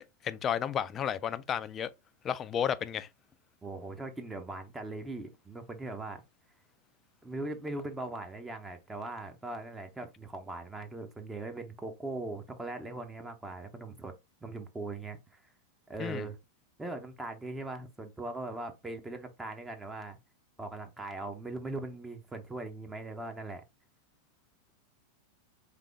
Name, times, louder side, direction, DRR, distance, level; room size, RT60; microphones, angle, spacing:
voice 1, 0.2-1.9 2.2-3.1 16.0-16.3, left 8 dB, 25° left, 0.4 m, -32 dB
voice 2, 3.6-6.2 7.2-14.1 14.4-15.4 15.9-16.4 16.8-20.2 20.6-23.6, right 2 dB, 10° right, 0.7 m, -40 dB
3.6 x 3.4 x 3.5 m
figure-of-eight pair, 90°, 0 cm